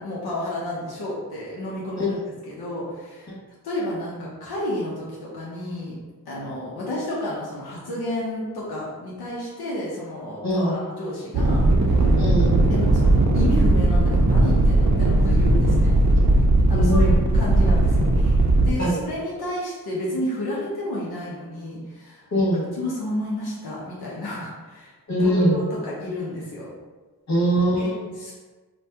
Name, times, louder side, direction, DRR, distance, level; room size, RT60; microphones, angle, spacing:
voice 1, 0.0-2.2 2.5-3.4 3.6-6.0 6.3-12.1 12.7-16.0 16.7-22.3 22.7-24.9 25.2-26.7 27.7-28.3, left 1 dB, 90° left, -5 dB, 0.7 m, -31 dB
voice 2, 10.4-10.7 12.2-12.6 16.7-17.2 18.8-19.0 22.3-22.7 25.1-25.6 27.3-28.0, right 1 dB, 45° left, -5 dB, 1.0 m, -22 dB
sound 1, 11.3-18.7, right 2 dB, 50° right, 0.5 m, -18 dB
2.7 x 2.2 x 3.3 m, 1.3 s
cardioid pair, 70°, 37 cm